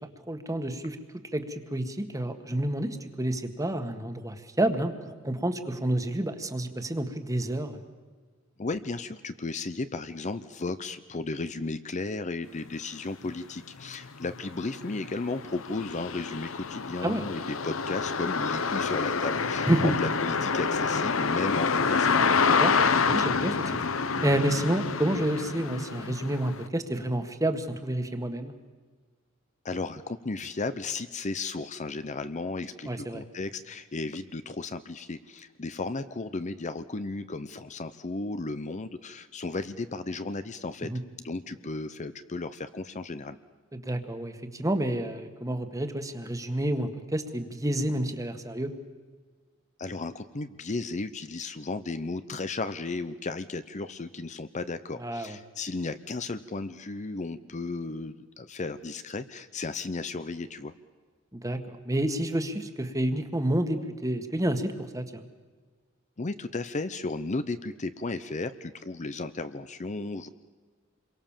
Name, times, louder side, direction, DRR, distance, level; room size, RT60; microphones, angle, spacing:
voice 1, 0.3-1.0 1.3-4.9 5.2-7.8 17.0-17.2 19.7-19.9 22.6-23.7 24.2-28.5 32.8-33.2 40.9-41.0 43.7-48.7 55.0-55.4 61.3-65.2, right 1 dB, 15° right, 8 dB, 1.7 m, -29 dB
voice 2, 8.6-22.2 29.6-40.9 41.2-43.4 49.8-60.7 66.2-70.3, left 3 dB, 35° left, 11 dB, 0.7 m, -34 dB
sound 1, 13.2-13.3 13.8-26.7, left 5 dB, 85° left, 1.0 m, -27 dB
28.0 x 23.0 x 7.4 m, 1.4 s
head